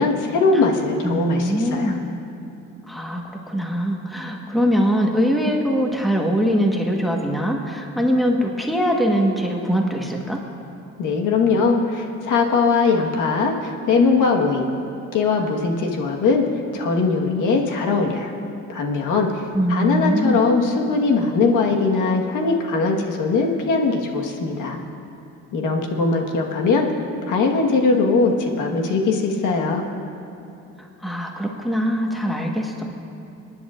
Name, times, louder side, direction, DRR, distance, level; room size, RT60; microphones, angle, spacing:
voice 1, 0.0-1.9 11.0-14.7 15.1-16.4 16.7-18.3 18.7-19.4 19.7-24.8 25.5-26.9 27.3-29.8, left 4 dB, 85° left, 1 dB, 1.5 m, -20 dB
voice 2, 1.0-2.0 2.9-10.4 19.5-20.4 30.8-32.8, equal, ahead, 0 dB, 1.3 m, -22 dB
24.0 x 10.5 x 2.5 m, 2.7 s
cardioid pair, 90°, 30 cm